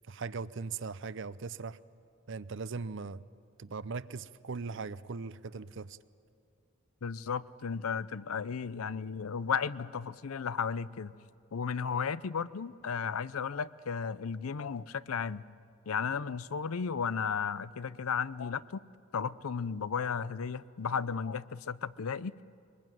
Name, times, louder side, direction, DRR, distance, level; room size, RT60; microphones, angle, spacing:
voice 1, 0.1-1.8 2.3-3.2 3.6-6.0, right 4 dB, 60° right, 17 dB, 0.6 m, -39 dB
voice 2, 7.0-11.1 11.5-15.4 15.9-18.8 19.1-22.3, left 6 dB, 85° left, 17 dB, 0.6 m, -34 dB
23.0 x 21.5 x 9.2 m, 2.4 s
head